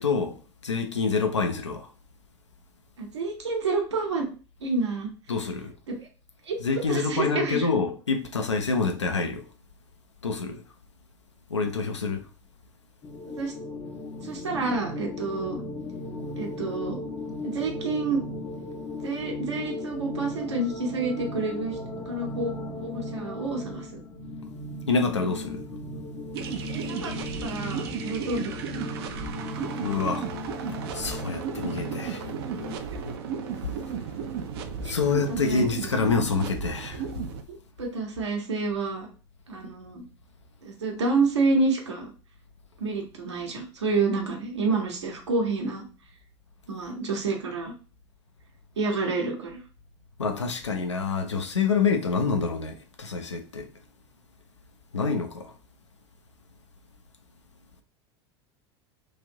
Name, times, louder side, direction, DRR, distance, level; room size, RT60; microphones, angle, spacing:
voice 1, 0.0-1.9 5.3-5.7 6.6-9.4 10.2-10.6 11.5-12.2 24.9-25.7 29.8-30.3 30.9-32.3 33.6-33.9 34.8-37.2 50.2-53.7 54.9-55.5, left 4 dB, 85° left, 0.5 m, -27 dB
voice 2, 3.0-4.3 4.6-5.1 6.0-6.1 6.4-6.6 6.9-7.7 13.4-13.5 14.2-15.6 16.4-17.0 17.4-18.2 19.0-21.8 22.1-24.0 26.7-28.6 31.5-31.6 32.9-33.0 34.8-34.9 35.3-35.6 37.5-39.1 39.5-40.0 40.6-42.1 42.8-45.8 46.7-47.7 48.8-49.6, right 3 dB, 75° right, 0.9 m, -29 dB
sound 1, 13.0-32.8, left 2 dB, 25° left, 0.5 m, -36 dB
sound 2, 26.3-37.4, right 6 dB, 60° right, 0.4 m, -35 dB
3.1 x 2.5 x 2.7 m
figure-of-eight pair, 80°, 15 cm